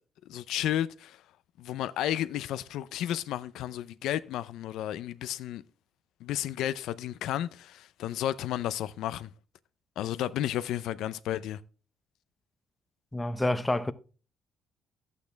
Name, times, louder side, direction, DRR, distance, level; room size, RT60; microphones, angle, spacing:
voice 1, 0.3-1.2 1.6-5.6 6.2-9.3 10.0-11.6, left 12 dB, 90° left, 0.5 m, -32 dB
voice 2, 13.1-13.9, left 1 dB, 10° left, 0.7 m, -28 dB
12.0 x 8.4 x 3.4 m
cardioid pair, 120°, 0 cm